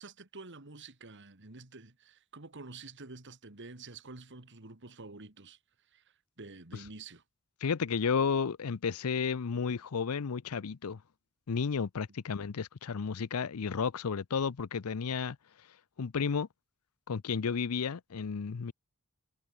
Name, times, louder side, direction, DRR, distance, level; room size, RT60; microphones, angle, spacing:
voice 1, 0.0-5.6 5.9-7.2, right 3 dB, 55° right, 2.2 m, -49 dB
voice 2, 7.6-11.0 11.5-15.4 16.0-16.5 17.1-18.7, left 6 dB, 80° left, 0.6 m, -32 dB
head